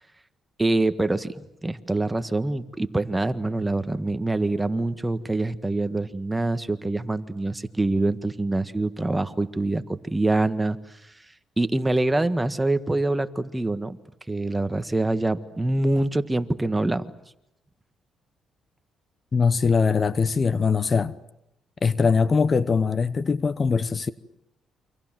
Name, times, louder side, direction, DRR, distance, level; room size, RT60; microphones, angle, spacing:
voice 1, 0.6-10.8 11.6-14.0 14.3-17.0, right 2 dB, 15° right, 1.6 m, -25 dB
voice 2, 19.3-21.1 21.8-24.1, left 5 dB, 35° left, 1.0 m, -22 dB
29.0 x 26.0 x 7.6 m
cardioid pair, 90°, 0 cm